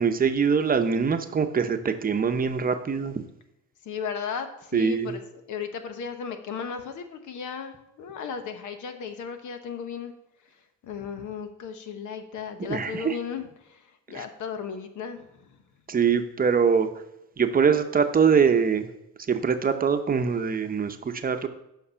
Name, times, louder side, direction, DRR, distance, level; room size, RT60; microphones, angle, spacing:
voice 1, 0.0-3.2 4.7-5.1 12.7-13.2 14.1-14.2 15.9-16.9 17.4-18.9 19.3-21.5, right 6 dB, 30° right, 7 dB, 0.8 m, -23 dB
voice 2, 3.8-5.2 5.5-10.1 10.8-15.6, left 6 dB, 80° left, 7 dB, 1.1 m, -35 dB
8.5 x 5.9 x 5.7 m, 0.85 s
cardioid pair, 120°, 30 cm